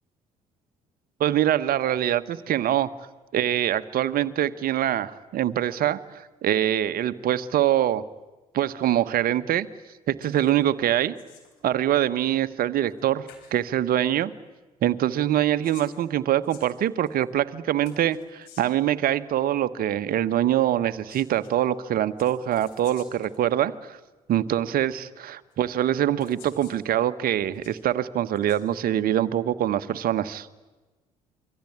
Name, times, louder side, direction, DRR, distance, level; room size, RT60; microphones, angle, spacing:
voice 1, 1.2-2.9 3.3-8.0 8.5-9.7 10.1-11.1 11.6-14.3 14.8-24.0 24.3-30.5, right 11 dB, 55° right, 12 dB, 1.3 m, -24 dB
sound 1, 10.2-10.6 10.9-11.6 12.9-13.0 13.3-13.5 15.3-17.2 17.8-18.9 20.8-21.5 22.2-23.4 24.3-24.4 25.5-25.6 26.2-26.8 27.3-27.8 28.3-28.6, left 8 dB, 70° left, 4.6 m, -52 dB
27.0 x 24.0 x 8.8 m, 1.1 s
figure-of-eight pair, 50°, 18 cm